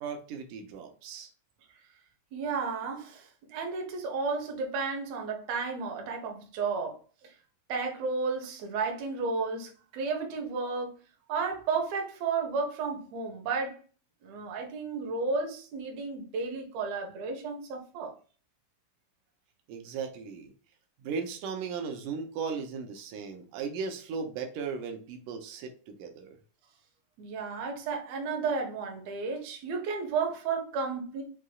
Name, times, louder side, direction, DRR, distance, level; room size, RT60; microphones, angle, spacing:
voice 1, 0.0-1.3 19.7-20.5 21.0-26.4, right 5 dB, 90° right, 2.2 m, -37 dB
voice 2, 2.3-7.3 7.7-11.0 11.3-13.8 14.2-18.1 27.2-31.2, right 4 dB, 65° right, 2.0 m, -33 dB
6.1 x 2.8 x 2.3 m
omnidirectional pair, 3.6 m